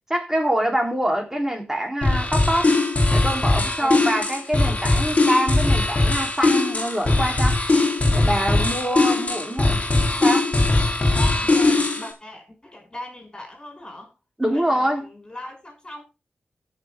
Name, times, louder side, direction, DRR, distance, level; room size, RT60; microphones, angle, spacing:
voice 1, 0.1-2.7 3.1-7.6 8.1-9.8 10.2-10.5 14.4-15.0, equal, 10° right, 3.4 m, -25 dB
sound 1, 2.0-12.1, left 2 dB, 40° left, 3.0 m, -20 dB
voice 2, 11.1-14.1 14.4-16.0, left 1 dB, 20° left, 5.9 m, -39 dB
16.0 x 6.2 x 3.6 m
wide cardioid pair, 90°, 4 cm